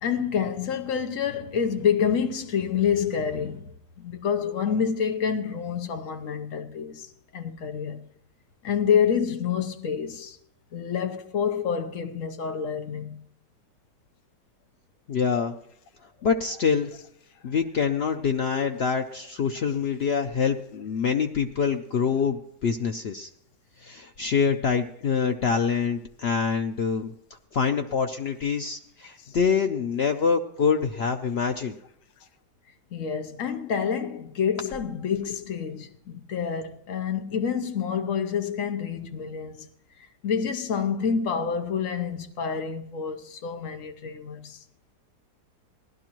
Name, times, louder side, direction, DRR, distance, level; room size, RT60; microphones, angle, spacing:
voice 1, 0.0-8.0 8.6-10.4 10.7-13.2 29.2-29.3 32.9-39.7 40.0-44.6, left 7 dB, 60° left, 1.1 m, -28 dB
voice 2, 15.1-15.6 16.2-16.9 17.4-23.3 23.8-27.1 27.5-31.8, left 6 dB, 85° left, 0.5 m, -25 dB
17.5 x 11.5 x 3.0 m
omnidirectional pair, 1.8 m